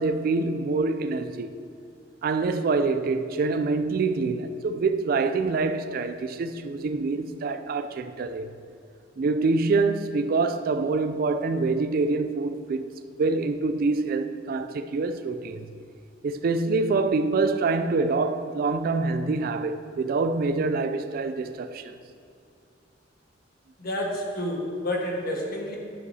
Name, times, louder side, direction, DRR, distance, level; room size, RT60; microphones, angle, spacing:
voice 1, 0.0-1.5 2.2-8.5 9.2-15.7 16.2-22.0, right 3 dB, 50° right, 0.4 m, -26 dB
voice 2, 23.8-25.8, left 1 dB, 55° left, 1.4 m, -29 dB
11.0 x 8.2 x 2.8 m
head